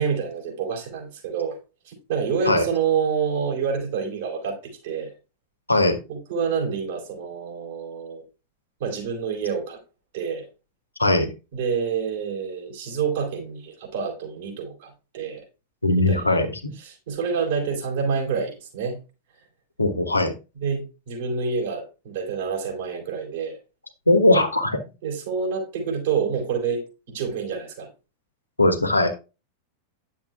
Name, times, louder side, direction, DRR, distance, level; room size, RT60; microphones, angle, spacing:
voice 1, 0.0-1.6 1.9-5.1 6.1-8.2 8.8-9.8 10.1-10.5 11.5-15.4 16.0-16.4 16.8-19.0 20.6-23.6 25.0-27.9, right 6 dB, 55° right, 4.7 m, -27 dB
voice 2, 5.7-6.0 11.0-11.3 15.8-16.7 19.8-20.3 24.1-24.8 28.6-29.1, left 2 dB, 85° left, 1.4 m, -19 dB
10.5 x 7.2 x 2.4 m
figure-of-eight pair, 90°, 0 cm